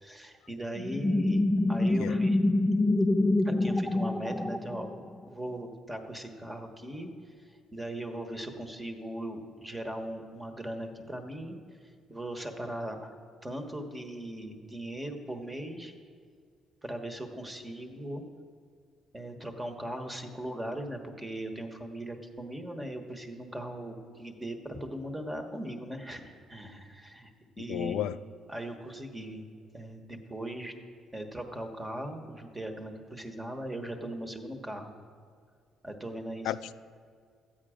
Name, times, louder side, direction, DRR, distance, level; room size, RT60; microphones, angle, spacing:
voice 1, 0.0-2.4 3.4-7.1 7.5-11.6 12.1-13.2 13.4-15.9 16.8-18.2 19.1-27.3 27.6-28.0 28.5-29.4 29.7-30.7 31.1-34.9 35.8-36.5, right 1 dB, 15° right, 1.2 m, -39 dB
sound 1, 0.8-5.2, left 2 dB, 10° left, 0.4 m, -26 dB
voice 2, 27.6-28.2 36.4-36.7, left 12 dB, 85° left, 0.3 m, -33 dB
13.5 x 9.0 x 5.0 m
cardioid pair, 110°, 0 cm